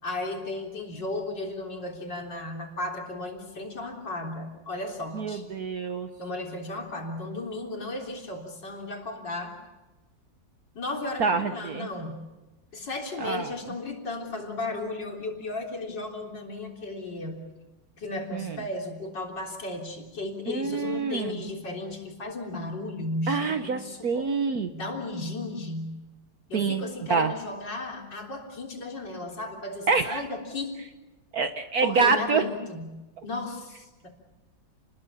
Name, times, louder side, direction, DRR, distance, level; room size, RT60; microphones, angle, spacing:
voice 1, 0.0-5.4 6.2-9.6 10.8-12.3 12.7-17.5 18.0-24.3 24.7-26.0 26.5-30.7 31.8-34.1, left 2 dB, 65° left, 1 dB, 4.3 m, -35 dB
voice 2, 5.1-6.1 11.2-11.9 13.2-13.5 18.3-18.6 20.5-21.3 23.3-24.7 26.5-27.3 29.9-30.2 31.3-32.4, right 5 dB, 55° right, 8 dB, 1.4 m, -26 dB
29.5 x 21.0 x 7.1 m, 1.1 s
omnidirectional pair, 2.0 m